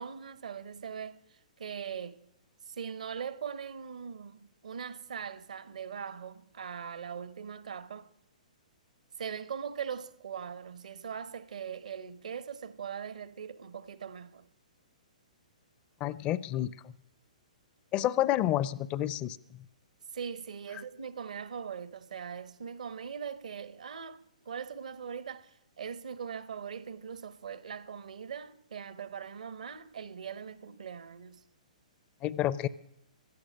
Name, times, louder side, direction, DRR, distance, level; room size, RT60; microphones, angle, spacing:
voice 1, 0.0-2.2 2.7-8.1 9.2-14.5 20.1-31.4, right 7 dB, 65° right, 0.8 m, -41 dB
voice 2, 16.0-16.9 17.9-19.6 32.2-32.7, left 13 dB, 25° left, 0.4 m, -30 dB
16.0 x 11.5 x 6.3 m
figure-of-eight pair, 120°, 4 cm